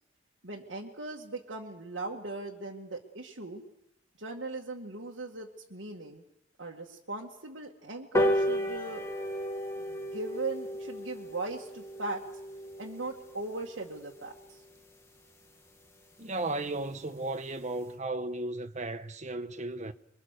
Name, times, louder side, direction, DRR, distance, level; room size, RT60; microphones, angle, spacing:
voice 1, 0.4-3.6 4.2-6.2 6.6-9.1 9.9-12.2 12.8-14.6, right 2 dB, 70° right, 2.0 m, -39 dB
sound 1, 8.1-14.9 15.3-15.4 15.7-15.8 16.1-16.2 16.5-16.6 16.9-17.2 17.6-17.7, equal, 15° left, 2.1 m, -34 dB
voice 2, 16.2-19.9, right 2 dB, 40° right, 1.2 m, -35 dB
26.0 x 23.5 x 6.7 m
head